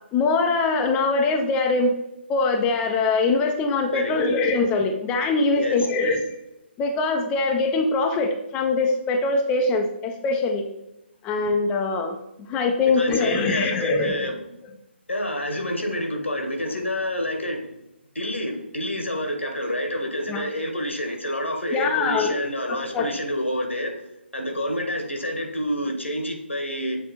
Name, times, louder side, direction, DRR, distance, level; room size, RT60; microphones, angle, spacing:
voice 1, 0.1-1.9 2.3-6.2 6.8-10.7 11.2-14.3 20.3-20.4 21.7-22.4 22.7-23.1, left 3 dB, 15° left, 3 dB, 0.5 m, -23 dB
voice 2, 3.8-4.1 5.6-5.8 12.9-14.4 15.1-17.7 18.1-23.9 24.3-27.0, equal, 90° left, 3 dB, 1.4 m, -28 dB
7.6 x 2.9 x 4.2 m, 0.88 s
figure-of-eight pair, 140°, 6 cm